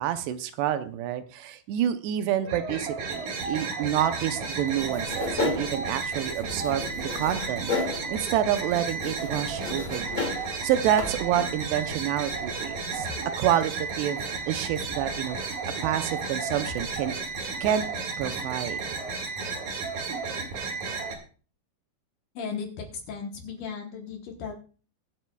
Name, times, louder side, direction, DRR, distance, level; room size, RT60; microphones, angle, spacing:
voice 1, 0.0-10.3 10.6-13.1 13.4-13.7 14.0-17.1 17.6-17.8 18.2-18.8, right 11 dB, 80° right, 10 dB, 2.9 m, -28 dB
sound 1, 2.4-21.1, right 4 dB, 50° right, 2.9 m, -33 dB
sound 2, 4.8-13.2, left 4 dB, 35° left, 2.4 m, -35 dB
sound 3, 13.0-13.2 14.8-15.4 16.7-17.8, left 6 dB, 80° left, 2.8 m, -45 dB
voice 2, 22.4-24.5, left 5 dB, 65° left, 2 dB, 2.3 m, -36 dB
23.5 x 7.8 x 2.3 m, 0.39 s
omnidirectional pair, 4.8 m